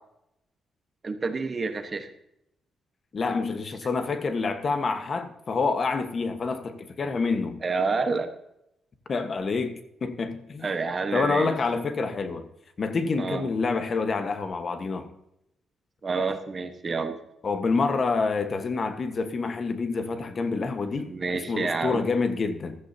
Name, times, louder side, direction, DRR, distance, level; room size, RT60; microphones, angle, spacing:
voice 1, 1.0-2.1 7.6-8.3 10.6-11.5 13.2-13.4 16.0-17.2 21.0-22.0, right 4 dB, 30° right, 1.2 m, -28 dB
voice 2, 3.1-7.6 9.1-10.7 11.1-12.5 12.8-15.1 17.4-21.1 21.5-22.8, left 4 dB, 40° left, 1.3 m, -27 dB
15.5 x 13.0 x 2.8 m
cardioid pair, 125°, 0 cm